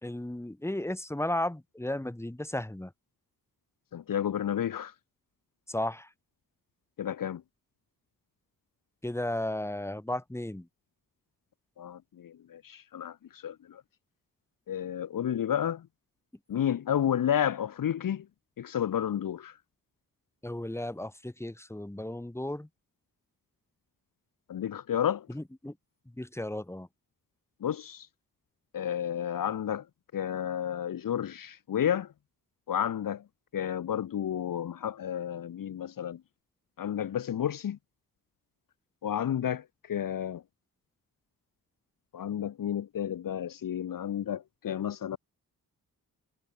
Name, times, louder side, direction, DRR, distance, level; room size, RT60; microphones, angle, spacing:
voice 1, 0.0-2.9 5.7-6.1 9.0-10.7 20.4-22.7 25.3-25.8 26.2-26.9, left 1 dB, 5° left, 2.7 m, -34 dB
voice 2, 3.9-4.9 7.0-7.4 11.8-13.8 14.7-15.9 16.5-18.3 18.6-19.6 24.5-25.3 27.6-28.1 28.7-29.8 30.1-32.1 32.7-33.2 33.5-36.2 36.8-37.8 39.0-40.4 42.1-45.2, left 9 dB, 65° left, 1.0 m, -31 dB
wide cardioid pair, 105°, 35 cm